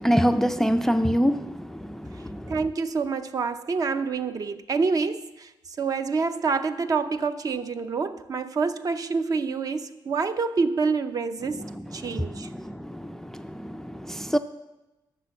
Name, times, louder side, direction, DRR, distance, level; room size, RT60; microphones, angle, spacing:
voice 1, 0.0-2.6 11.7-14.4, equal, 5° left, 10 dB, 0.3 m, -26 dB
voice 2, 2.5-5.5 5.8-11.6 11.9-12.5, right 4 dB, 45° right, 9 dB, 0.6 m, -27 dB
11.5 x 6.7 x 7.0 m, 1.0 s
wide cardioid pair, 145°, 9 cm